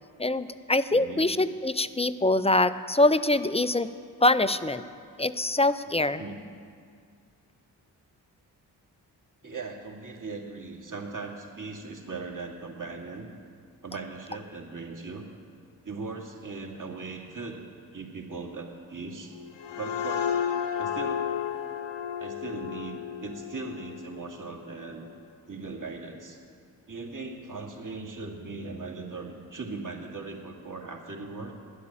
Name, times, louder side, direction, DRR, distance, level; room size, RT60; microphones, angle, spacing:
voice 1, 0.2-3.9 4.2-4.8 5.2-6.2, left 2 dB, 15° left, 13 dB, 0.5 m, -24 dB
voice 2, 0.9-1.2 6.2-6.4 9.4-13.3 13.8-15.3 15.8-17.6 17.9-19.3 19.7-20.3 20.8-21.3 22.2-25.1 25.5-26.4 26.9-31.5, right 3 dB, 45° right, 1 dB, 2.6 m, -39 dB
sound 1, 19.3-24.8, left 8 dB, 75° left, 1.0 m, -32 dB
11.5 x 8.3 x 8.8 m, 2.2 s
supercardioid pair, 40°, 44 cm